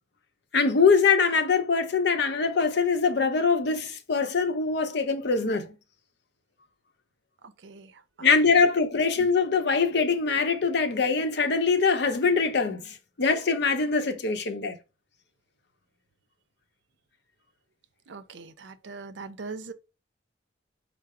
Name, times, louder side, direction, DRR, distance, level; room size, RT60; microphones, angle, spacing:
voice 1, 0.5-5.7 8.2-14.8, left 5 dB, 70° left, 0.7 m, -23 dB
voice 2, 18.1-19.7, right 4 dB, 75° right, 0.5 m, -40 dB
5.6 x 2.0 x 4.8 m
head